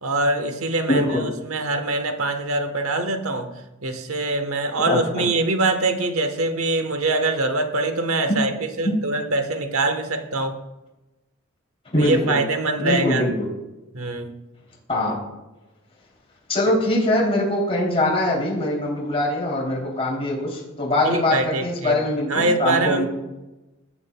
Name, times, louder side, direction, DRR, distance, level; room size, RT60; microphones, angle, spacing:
voice 1, 0.0-3.5 3.8-8.5 8.8-10.6 12.0-13.3 13.9-14.3 21.0-22.0 22.3-23.1, right 2 dB, 80° right, 7 dB, 1.1 m, -23 dB
voice 2, 0.9-1.2 4.9-5.0 11.8-12.4 12.8-13.5 14.9-15.2 16.5-23.1, left 1 dB, 30° left, -4 dB, 3.0 m, -22 dB
17.0 x 7.3 x 2.2 m, 1.0 s
head